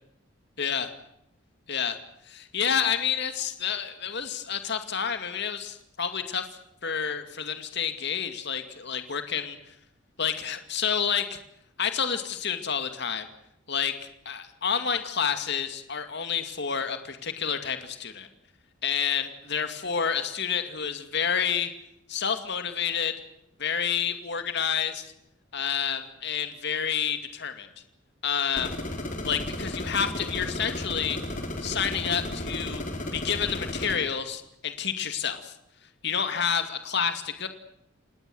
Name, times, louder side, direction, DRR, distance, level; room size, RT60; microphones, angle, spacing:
voice 1, 2.3-6.5 6.8-9.7 10.2-11.4 11.8-13.3 13.7-18.3 18.8-21.7 22.1-23.1 23.6-25.0 25.5-27.7 28.2-28.8 29.2-31.2 31.6-32.8 33.1-35.5 36.0-37.5, left 7 dB, 60° left, 8 dB, 2.3 m, -29 dB
sound 1, 28.6-34.0, left 1 dB, 40° left, 4.3 m, -34 dB
30.0 x 19.0 x 7.9 m, 0.79 s
head